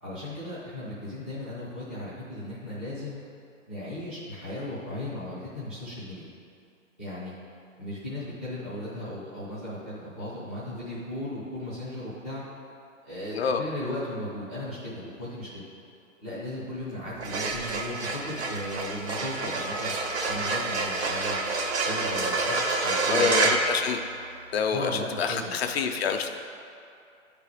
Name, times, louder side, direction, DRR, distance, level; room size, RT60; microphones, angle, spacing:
voice 1, 0.0-3.2 3.7-6.3 7.0-7.3 7.8-12.4 13.0-15.6 16.2-19.9 20.3-21.4 21.9-23.5 24.7-25.6, left 1 dB, 10° right, -14 dB, 0.4 m, -36 dB
sound 1, 17.1-24.5, right 3 dB, 55° right, 0.9 m, -28 dB
voice 2, 23.1-24.0 24.5-24.9 25.2-26.3, left 6 dB, 50° left, 5 dB, 0.6 m, -27 dB
10.0 x 3.4 x 4.9 m, 2.5 s
hypercardioid pair, 165°, 39 cm